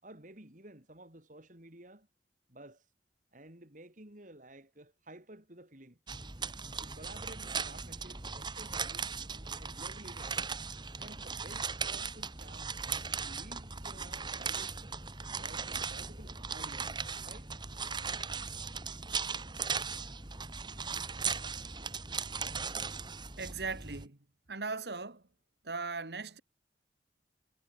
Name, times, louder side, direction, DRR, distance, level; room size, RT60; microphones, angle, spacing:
voice 1, 0.0-2.1 2.5-2.9 3.3-6.0 6.8-10.4 10.9-12.7 13.2-14.9 15.4-16.9 17.3-17.5, right 1 dB, 45° right, 4.2 m, -53 dB
sound 1, 6.1-24.1, right 5 dB, 25° right, 2.2 m, -38 dB
voice 2, 23.1-24.2 24.5-25.2 25.6-26.4, right 4 dB, 70° right, 2.0 m, -39 dB
head